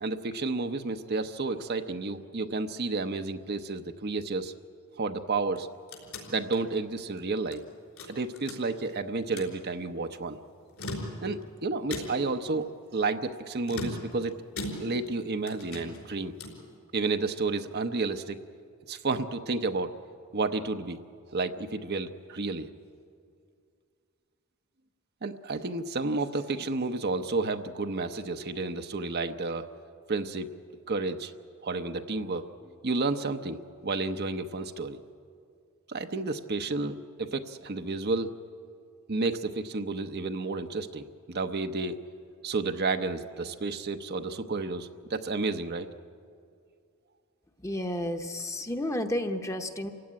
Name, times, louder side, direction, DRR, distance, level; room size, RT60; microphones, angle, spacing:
voice 1, 0.0-4.5 5.0-5.7 6.3-7.6 8.1-10.4 11.2-14.3 14.8-16.3 16.9-18.4 18.9-19.9 20.3-21.0 21.3-22.7 25.2-29.7 30.1-30.5 30.9-31.3 31.6-32.5 32.8-35.0 35.9-38.3 39.1-42.0 42.4-45.9, right 3 dB, 50° right, 7 dB, 0.8 m, -31 dB
sound 1, 5.4-7.6 8.0-8.9 9.2-9.6 10.6-11.5 11.9-12.4 13.6-15.2 15.5-16.7, left 1 dB, 80° left, 4.7 m, -39 dB
voice 2, 47.6-49.9, left 1 dB, 15° left, 5 dB, 1.0 m, -31 dB
27.5 x 16.5 x 9.6 m, 2.3 s
head